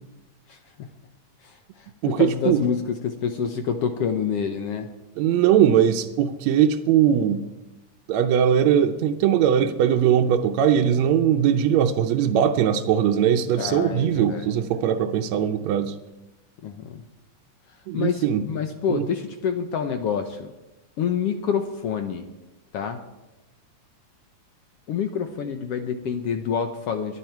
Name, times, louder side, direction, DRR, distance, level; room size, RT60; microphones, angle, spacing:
voice 1, 0.5-0.9 1.4-4.9 13.6-14.5 16.6-17.0 17.9-20.5 21.0-22.3 22.7-23.0 24.9-27.2, left 7 dB, 70° left, 7 dB, 1.6 m, -27 dB
voice 2, 2.0-2.6 5.2-7.5 8.1-16.0 17.9-18.4 18.9-19.0, right 9 dB, 75° right, 5 dB, 1.9 m, -20 dB
22.5 x 9.3 x 4.5 m, 1.0 s
omnidirectional pair, 3.4 m